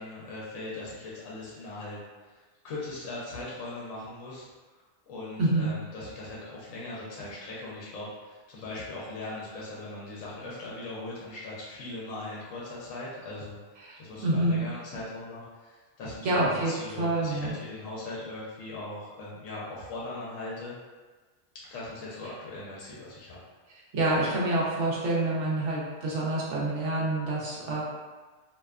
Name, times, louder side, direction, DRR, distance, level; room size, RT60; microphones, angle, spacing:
voice 1, 0.0-13.6 14.0-20.7 21.7-23.4, left 2 dB, 75° left, -6 dB, 1.0 m, -40 dB
voice 2, 5.4-5.7 13.8-14.7 16.2-16.7 17.0-17.5 23.9-27.8, right 2 dB, 65° right, -6 dB, 1.0 m, -27 dB
2.7 x 2.1 x 2.3 m, 1.3 s
omnidirectional pair, 1.4 m